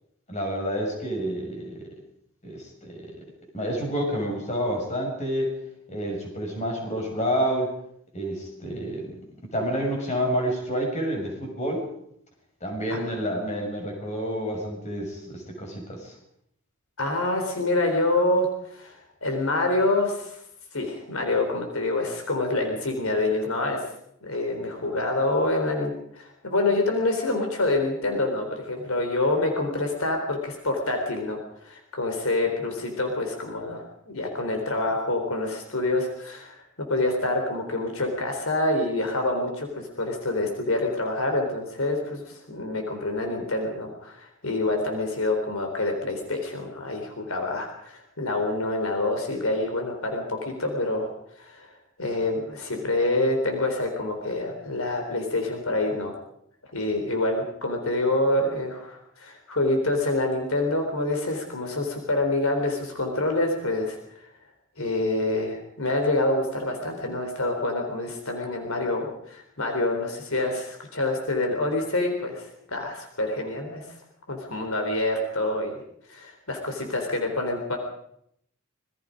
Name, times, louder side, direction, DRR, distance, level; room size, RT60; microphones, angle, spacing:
voice 1, 0.3-1.9 2.4-3.2 3.5-5.5 5.9-7.7 8.1-9.1 9.4-11.9 12.6-16.1, equal, 30° left, 1 dB, 6.4 m, -29 dB
voice 2, 17.0-18.9 19.2-20.4 20.7-23.8 24.2-36.6 36.9-51.1 51.4-51.7 52.0-56.2 56.7-64.0 64.8-73.9 74.3-75.8 76.1-77.8, left 2 dB, 75° left, 3 dB, 3.7 m, -27 dB
26.5 x 20.5 x 5.2 m, 0.72 s
head